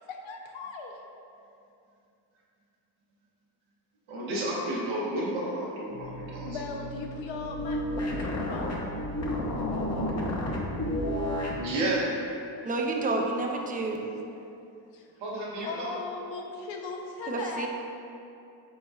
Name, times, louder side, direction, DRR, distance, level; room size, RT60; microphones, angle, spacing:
voice 1, 0.1-1.0 4.3-4.4 6.4-7.8 8.2-8.7 13.6-13.7 14.9-15.1 15.6-17.7, left 4 dB, 75° left, 2 dB, 0.6 m, -38 dB
voice 2, 4.1-6.6 11.6-12.1 15.2-15.9, right 1 dB, 90° right, -5 dB, 1.0 m, -31 dB
sound 1, 5.9-11.6, left 1 dB, 35° left, 0.7 m, -32 dB
voice 3, 12.6-14.1 17.3-17.7, right 2 dB, 20° right, 1 dB, 0.4 m, -29 dB
4.6 x 4.1 x 2.3 m, 2.6 s
cardioid pair, 70°, 46 cm